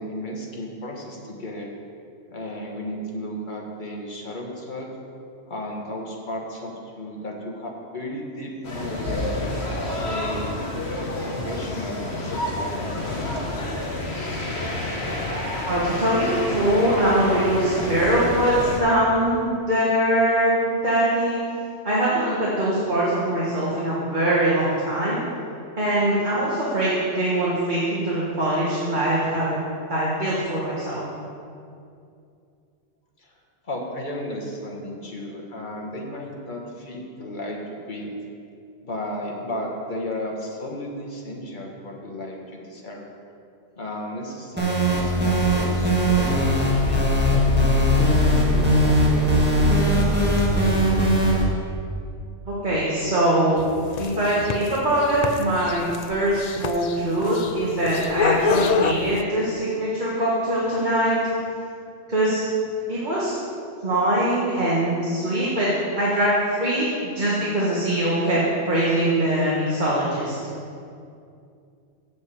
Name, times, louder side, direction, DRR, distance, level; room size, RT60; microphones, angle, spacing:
voice 1, 0.0-1.7 2.3-4.9 5.5-10.5 11.2-13.2 33.2-33.4 33.6-38.1 38.8-43.0 43.8-49.7, left 1 dB, 40° left, -1 dB, 1.6 m, -34 dB
sound 1, 8.6-18.8, left 1 dB, 60° left, 1.7 m, -29 dB
voice 2, 15.7-21.4 21.8-25.2 25.8-31.0 52.5-53.7 54.0-61.2 62.1-62.4 62.9-63.3 63.8-68.4 68.7-70.4, right 1 dB, 40° right, -7 dB, 1.7 m, -22 dB
sound 2, 44.6-51.4, equal, 10° right, 1.6 m, -19 dB
sound 3, 53.6-59.2, left 5 dB, 80° left, 0.3 m, -26 dB
7.7 x 7.2 x 7.6 m, 2.5 s
omnidirectional pair, 1.2 m